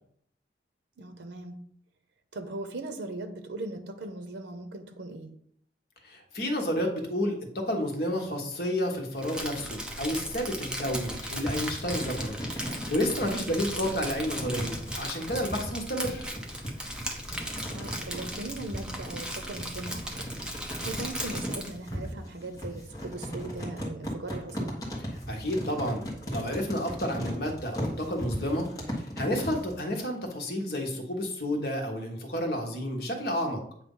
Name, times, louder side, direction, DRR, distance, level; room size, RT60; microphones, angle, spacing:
voice 1, 1.0-1.6 2.3-5.3 17.7-20.3 20.8-24.8, right 2 dB, 80° right, 7 dB, 0.7 m, -39 dB
voice 2, 6.0-16.3 25.3-28.7 29.0-33.6, equal, 55° left, 1 dB, 1.3 m, -31 dB
Crumpling crinkling, 9.2-21.8, right 1 dB, 5° right, 0.7 m, -37 dB
sound 1, 10.7-29.8, equal, 20° left, 1.3 m, -37 dB
8.1 x 2.7 x 5.4 m, 0.67 s
head